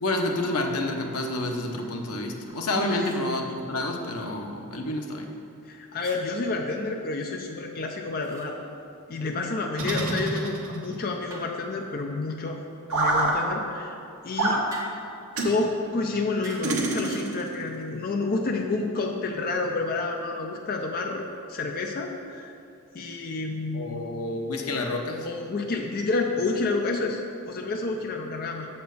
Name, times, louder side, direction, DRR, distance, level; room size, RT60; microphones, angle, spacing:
voice 1, 0.0-5.3 23.7-25.3, left 2 dB, 85° left, 2 dB, 0.9 m, -29 dB
sound 1, 2.4-2.6 3.0-3.3 6.0-6.2 8.2-8.5 10.0-10.2 11.3-11.7 14.7-15.1 16.4-16.7 17.0-17.3, right 1 dB, 15° right, 1.2 m, -44 dB
voice 2, 5.7-8.6 9.1-12.6 12.9-14.0 14.2-14.7 15.4-22.5 22.9-24.1 24.7-24.8 25.2-28.7, left 3 dB, 40° left, 2 dB, 0.5 m, -29 dB
sound 2, 9.8-11.0 12.9-13.3 14.4-14.6 15.3-15.6 16.6-17.5, right 2 dB, 70° right, 1.2 m, -26 dB
7.5 x 4.3 x 6.8 m, 2.6 s
head